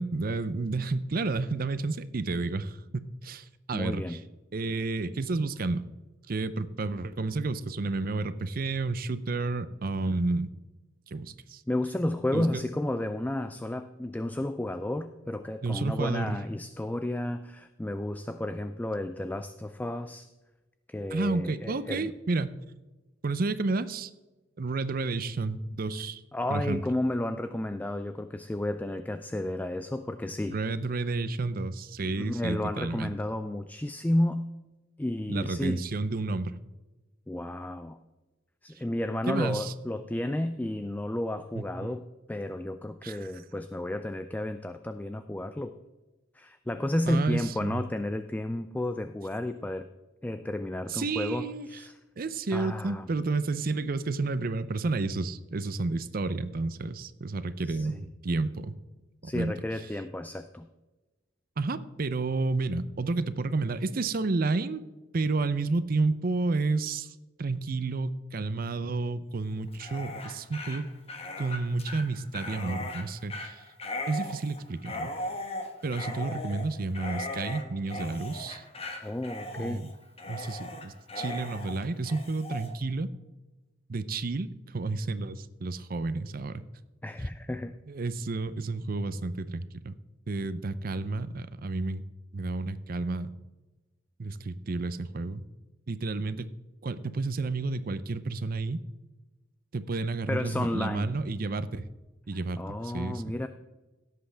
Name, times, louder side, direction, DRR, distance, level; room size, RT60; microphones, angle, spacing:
voice 1, 0.0-4.2 4.5-5.8 6.3-10.5 11.1-11.6 12.3-12.6 15.6-16.4 21.1-22.5 23.2-24.1 24.6-26.2 26.5-26.8 30.5-33.1 35.3-36.5 39.3-39.7 41.6-41.9 43.0-43.2 47.1-47.8 50.9-51.7 52.2-58.8 59.2-59.5 61.6-64.8 65.1-70.9 71.4-73.6 74.1-75.1 75.8-78.6 79.6-79.9 80.3-83.1 83.9-86.6 87.9-89.9 90.3-92.0 92.3-93.3 94.2-95.5 95.9-96.5 96.8-98.8 99.7-101.8 102.3-103.4, right 3 dB, 50° right, 14 dB, 0.6 m, -31 dB
voice 2, 3.7-4.2 11.7-20.3 20.9-22.1 26.3-30.6 32.0-34.5 35.0-35.9 37.3-38.0 38.6-45.7 46.3-49.9 50.2-51.9 52.5-53.1 57.7-58.0 59.2-60.7 79.0-79.9 87.0-87.8 100.3-101.1 102.6-103.5, left 1 dB, 10° left, 10 dB, 0.3 m, -32 dB
Dog, 69.7-82.7, left 2 dB, 35° left, 1.4 m, -38 dB
17.0 x 7.7 x 3.4 m, 1.1 s
head